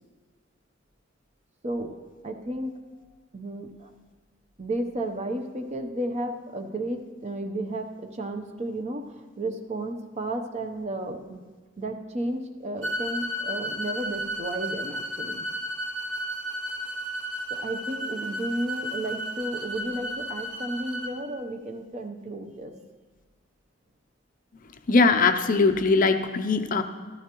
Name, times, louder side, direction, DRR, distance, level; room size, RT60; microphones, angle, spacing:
voice 1, 2.2-2.7 3.3-3.9 4.6-11.4 11.8-15.4 17.5-22.7, right 1 dB, 35° right, 6 dB, 0.7 m, -33 dB
sound 1, 12.8-21.1, equal, 70° right, 2.7 m, -33 dB
voice 2, 24.9-26.8, left 4 dB, 40° left, 8 dB, 0.5 m, -21 dB
13.5 x 13.0 x 3.0 m, 1.4 s
head